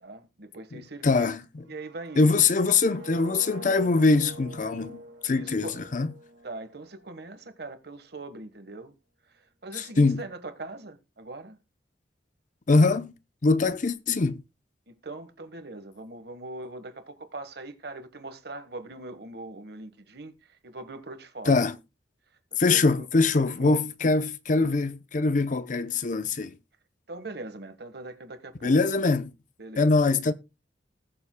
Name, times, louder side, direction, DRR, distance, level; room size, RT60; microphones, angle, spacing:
voice 1, 0.0-1.3 1.7-2.3 5.3-5.8 6.4-8.9 9.6-11.6 14.9-20.3 20.6-21.6 22.5-23.1 23.6-23.8 27.1-28.8 29.6-29.9, right 2 dB, 60° right, 1.3 m, -41 dB
voice 2, 0.7-1.6 2.2-6.1 9.7-10.3 12.7-13.1 13.4-14.4 21.5-21.8 22.6-26.6 28.6-29.3 29.8-30.3, left 3 dB, 45° left, 0.6 m, -23 dB
sound 1, 1.6-7.6, right 1 dB, 85° right, 1.8 m, -47 dB
19.5 x 7.1 x 2.2 m
head